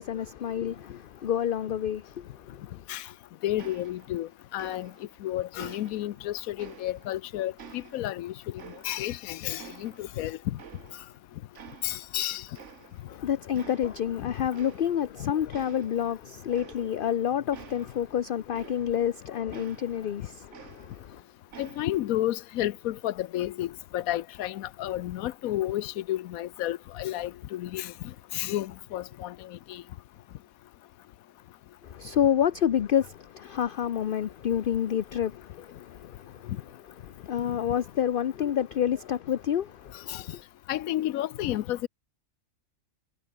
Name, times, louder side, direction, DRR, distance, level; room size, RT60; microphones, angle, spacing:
voice 1, 0.0-2.8 13.1-21.2 31.8-36.5 37.0-40.4, left 9 dB, 50° left, 0.7 m, -29 dB
voice 2, 3.4-4.9 5.2-8.3 8.8-10.6 11.8-12.4 15.2-15.3 21.6-27.9 28.3-29.8 40.1-40.2 40.7-41.9, left 14 dB, 80° left, 1.1 m, -31 dB
sound 1, 3.6-4.3 4.6-5.2 5.6-7.2 7.6-9.2 9.6-11.2 11.5-12.2 12.5-13.2 13.5-14.1 14.5-15.2 15.5-19.1 19.5-21.2 21.5-22.1, right 8 dB, 60° right, 1.4 m, -50 dB
omnidirectional pair, 1.5 m